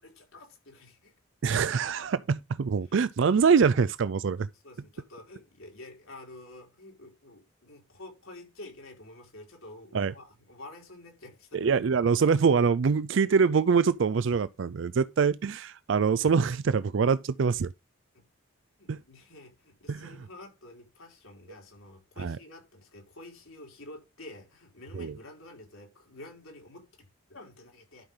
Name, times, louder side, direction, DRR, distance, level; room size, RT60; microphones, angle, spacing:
voice 1, 0.0-1.1 4.6-11.7 18.1-18.2 18.8-28.0, left 2 dB, 90° left, 4.8 m, -49 dB
voice 2, 1.4-4.5 9.9-10.1 11.5-17.7 18.9-19.0 19.9-20.2 22.2-22.4 24.9-25.2, right 5 dB, 65° right, 0.4 m, -24 dB
11.5 x 5.7 x 3.7 m
head